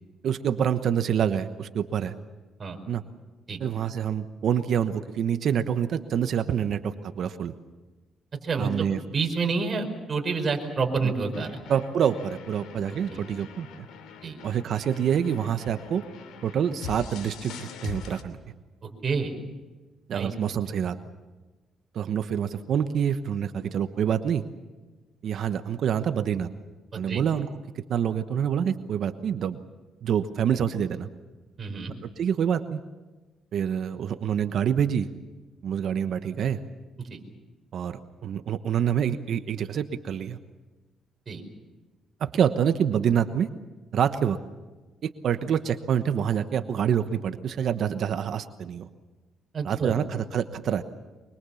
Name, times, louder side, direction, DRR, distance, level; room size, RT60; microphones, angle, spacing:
voice 1, 0.2-2.1 2.9-3.0 3.6-7.5 8.6-9.0 11.0-11.1 11.7-13.9 14.4-16.0 16.4-18.4 20.1-21.0 21.9-24.4 25.2-26.5 26.9-27.5 27.7-29.6 30.0-31.1 32.2-32.8 33.5-35.1 35.6-36.6 37.7-40.4 42.2-43.5 43.9-44.4 45.0-48.9 49.6-50.8, right 8 dB, 65° right, 9 dB, 1.1 m, -26 dB
voice 2, 8.4-11.6 13.1-13.2 14.2-14.4 18.8-19.3 20.1-20.3 26.9-27.2 31.6-31.9 37.0-37.2 41.3-41.4 49.5-49.9, right 4 dB, 40° right, 3 dB, 5.1 m, -29 dB
sound 1, 11.3-18.2, left 6 dB, 85° left, 2.8 m, -43 dB
24.5 x 23.5 x 7.1 m, 1.2 s
cardioid pair, 90°, 0 cm